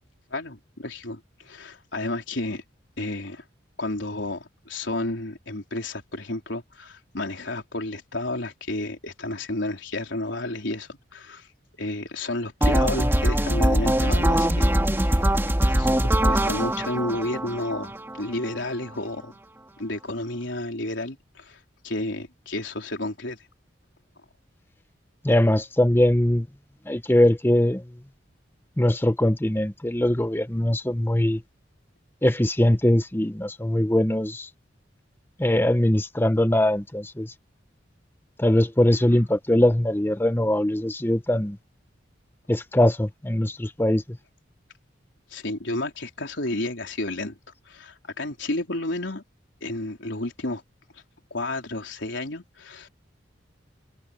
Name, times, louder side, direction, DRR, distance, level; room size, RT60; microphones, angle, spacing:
voice 1, 0.3-2.6 3.0-3.4 3.8-11.5 11.8-15.4 15.8-15.9 16.2-19.3 19.8-23.4 45.3-47.4 47.7-49.2 49.6-50.6 50.9-51.0 51.3-52.9, left 2 dB, 70° left, 4.0 m, -31 dB
sound 1, 12.6-18.6, right 1 dB, 10° right, 1.8 m, -22 dB
voice 2, 25.2-26.5 26.9-27.8 28.8-31.4 32.2-34.5 35.4-37.3 38.4-41.6 42.5-44.0, left 1 dB, 10° left, 0.8 m, -21 dB
head